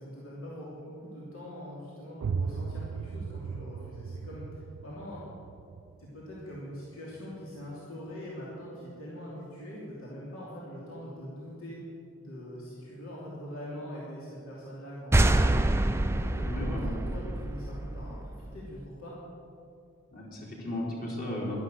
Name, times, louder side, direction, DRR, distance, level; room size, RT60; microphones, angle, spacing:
voice 1, 0.0-5.2 6.0-11.8 12.2-15.7 16.1-19.1, equal, 75° left, -6 dB, 3.1 m, -43 dB
sound 1, 2.2-7.8, right 5 dB, 90° right, 0.4 m, -38 dB
sound 2, 15.1-18.6, right 1 dB, 10° right, 0.4 m, -26 dB
voice 2, 16.5-16.9 20.1-21.6, left 1 dB, 40° left, -3 dB, 3.6 m, -35 dB
12.0 x 11.5 x 7.9 m, 2.5 s
head